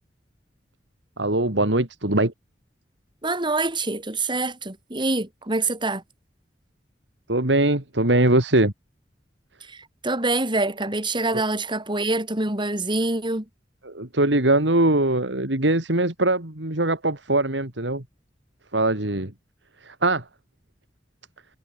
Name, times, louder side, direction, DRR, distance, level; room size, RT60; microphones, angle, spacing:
voice 1, 1.2-2.3 7.3-8.7 13.8-18.0 18.7-19.3 19.8-20.2, right 2 dB, 85° right, 3.2 m, -21 dB
voice 2, 3.2-6.0 9.7-13.4, right 2 dB, 25° right, 5.0 m, -25 dB
head